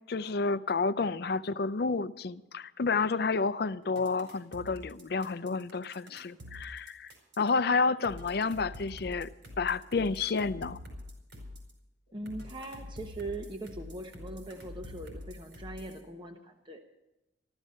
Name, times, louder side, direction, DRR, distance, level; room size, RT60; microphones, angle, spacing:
voice 1, 0.1-7.1 7.4-9.3 9.6-10.8, left 4 dB, 55° left, 0.5 m, -30 dB
sound 1, 4.0-7.5 8.0-11.7 12.3-16.0, left 1 dB, 75° right, 4.9 m, -46 dB
voice 2, 12.1-16.8, right 2 dB, 25° right, 1.0 m, -41 dB
14.0 x 13.5 x 6.4 m
head